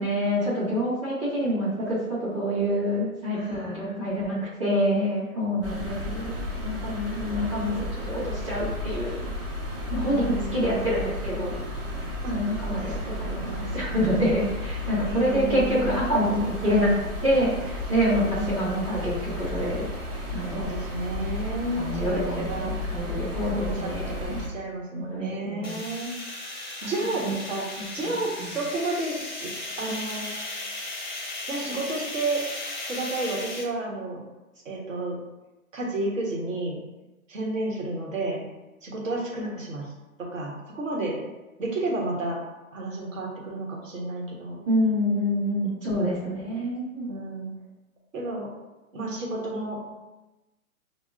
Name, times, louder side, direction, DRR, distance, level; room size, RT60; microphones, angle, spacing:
voice 1, 0.0-6.3 6.6-9.2 9.9-11.6 12.3-16.9 17.2-19.8 20.3-20.8 21.7-24.4 24.9-25.8 26.8-27.4 28.0-28.1 28.4-28.6 44.7-47.1, equal, 20° right, -10 dB, 1.2 m, -27 dB
voice 2, 3.3-4.4 5.5-6.4 9.9-10.9 12.2-12.3 12.6-13.8 15.0-16.0 18.0-18.9 20.5-22.7 23.4-26.1 26.8-29.5 29.8-30.3 31.5-32.4 32.9-34.2 34.6-35.2 35.7-36.8 37.3-38.4 38.8-39.9 40.2-41.2 41.6-42.4 42.7-44.6 45.6-46.3 47.0-47.5 48.1-48.5 48.9-49.8, right 2 dB, 60° right, -2 dB, 1.3 m, -32 dB
sound 1, 5.6-24.5, left 1 dB, 40° right, 0.8 m, -33 dB
sound 2, 25.6-33.6, left 2 dB, 35° left, 0.5 m, -36 dB
5.4 x 2.1 x 2.5 m, 1.0 s
hypercardioid pair, 175°, 43 cm